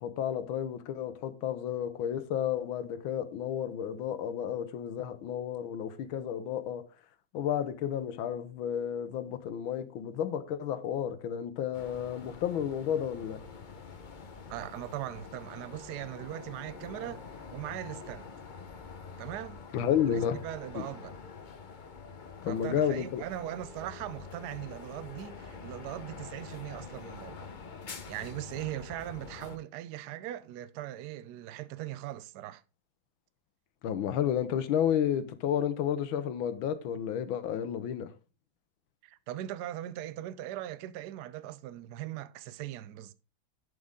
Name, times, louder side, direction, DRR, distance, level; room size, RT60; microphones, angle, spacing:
voice 1, 0.0-6.9 7.3-13.4 19.7-20.4 20.7-20.8 22.4-23.2 33.8-38.1, left 9 dB, 85° left, 1.6 m, -31 dB
sound 1, 11.7-29.6, left 5 dB, 60° left, 0.5 m, -46 dB
voice 2, 14.5-17.2 17.5-18.3 19.2-19.6 20.1-21.2 22.4-27.5 28.1-32.6 39.0-43.1, right 13 dB, 75° right, 0.9 m, -40 dB
11.0 x 5.2 x 3.5 m
omnidirectional pair, 2.2 m